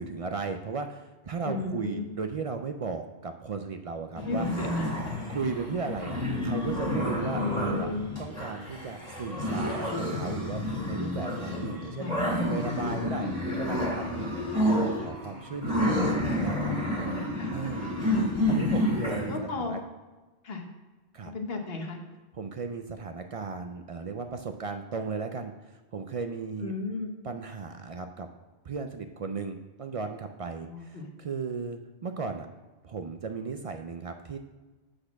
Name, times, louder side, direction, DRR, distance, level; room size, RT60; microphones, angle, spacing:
voice 1, 0.0-4.5 5.3-7.9 8.2-16.0 16.2-16.7 17.5-19.8 21.1-21.3 22.3-26.7 27.2-28.3 28.6-32.5 32.8-34.4, right 5 dB, 65° right, 6 dB, 0.3 m, -36 dB
voice 2, 1.4-2.0 4.3-5.1 7.3-8.0 12.0-12.2 16.9-17.5 19.3-19.8 20.4-20.7 21.3-22.0 26.6-27.1 30.7-31.1, left 3 dB, 65° left, 3 dB, 1.2 m, -34 dB
sound 1, 4.2-19.4, left 1 dB, 35° left, 2.3 m, -29 dB
7.8 x 4.3 x 5.8 m, 1.2 s
omnidirectional pair, 1.1 m